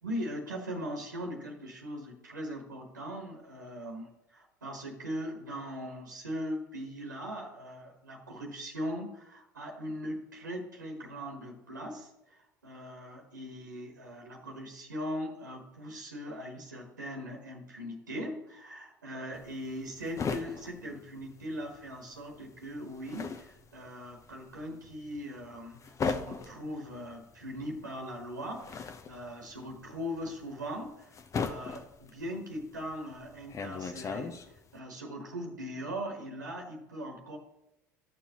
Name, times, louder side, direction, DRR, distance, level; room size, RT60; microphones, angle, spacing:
voice 1, 0.0-34.4 34.7-37.4, equal, 90° right, 1 dB, 1.2 m, -40 dB
sound 1, 19.3-21.9 22.1-34.8, left 5 dB, 35° left, 0.7 m, -38 dB
12.5 x 7.0 x 2.9 m, 0.92 s
figure-of-eight pair, 65°, 10 cm